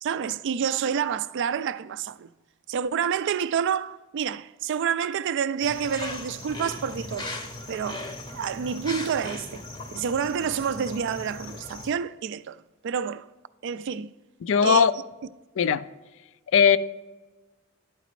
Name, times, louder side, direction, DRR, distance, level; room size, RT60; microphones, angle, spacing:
voice 1, 0.0-2.3 2.7-7.3 7.7-9.6 9.9-12.6 12.8-13.3 13.6-14.1 14.6-14.9, right 7 dB, 55° right, 0.3 m, -28 dB
sound 1, 5.6-11.9, left 2 dB, 20° left, 0.7 m, -38 dB
voice 2, 14.4-14.9 15.6-15.8 16.5-16.8, left 6 dB, 60° left, 0.4 m, -18 dB
12.0 x 4.9 x 3.1 m
head